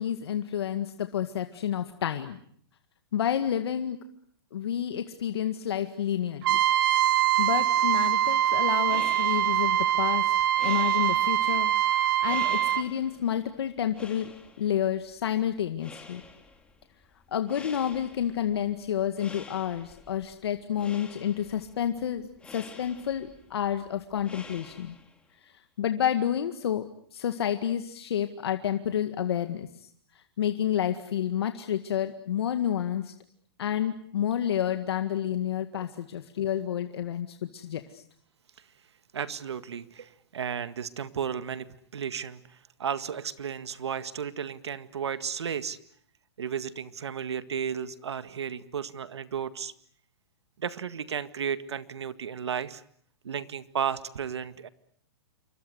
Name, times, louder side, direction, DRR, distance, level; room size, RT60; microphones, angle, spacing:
voice 1, 0.0-2.4 3.1-4.0 4.5-6.6 7.4-10.3 10.6-11.7 12.2-14.3 14.6-16.2 17.3-24.9 25.8-29.7 30.4-33.1 33.6-38.0, left 9 dB, 75° left, 8 dB, 1.9 m, -29 dB
Trumpet, 6.4-12.8, right 12 dB, 55° right, 1.6 m, -24 dB
sound 1, 8.7-25.3, left 3 dB, 10° left, 3.1 m, -49 dB
voice 2, 39.1-41.7 41.9-42.4 42.8-45.8 46.4-49.7 50.6-52.8 53.2-54.7, right 7 dB, 90° right, 12 dB, 1.9 m, -33 dB
28.0 x 24.0 x 8.0 m, 0.64 s
hypercardioid pair, 150°, 14 cm